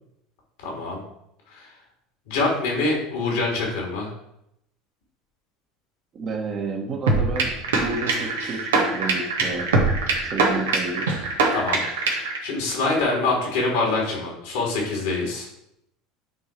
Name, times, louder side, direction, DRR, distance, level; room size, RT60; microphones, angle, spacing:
voice 1, 0.6-1.0 1.5-1.7 2.3-4.1 11.5-15.5, left 3 dB, 60° left, -1 dB, 3.0 m, -25 dB
voice 2, 6.1-9.7 10.2-11.1, right 4 dB, 35° right, 1 dB, 1.7 m, -30 dB
sound 1, 7.1-12.4, right 3 dB, 70° right, 1.5 m, -23 dB
9.7 x 4.7 x 4.7 m, 0.79 s
figure-of-eight pair, 70°, 0 cm